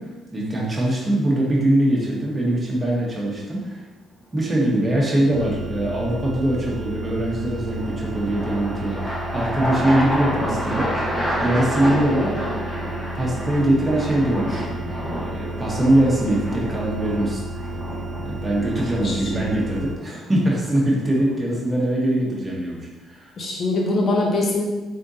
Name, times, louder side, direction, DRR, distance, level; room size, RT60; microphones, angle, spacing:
voice 1, 0.0-3.8 4.3-10.9 11.4-12.4 13.1-14.6 15.2-17.4 18.2-23.3, right 1 dB, 25° right, -4 dB, 1.3 m, -22 dB
sound 1, 2.6-3.1 7.0-21.5, equal, 10° left, 1.3 m, -30 dB
sound 2, 5.3-19.9, right 1 dB, 70° right, 0.6 m, -33 dB
voice 2, 19.0-19.4 23.4-24.6, left 2 dB, 50° left, -1 dB, 1.0 m, -22 dB
3.7 x 3.5 x 2.8 m, 1.2 s
supercardioid pair, 70°, 0 cm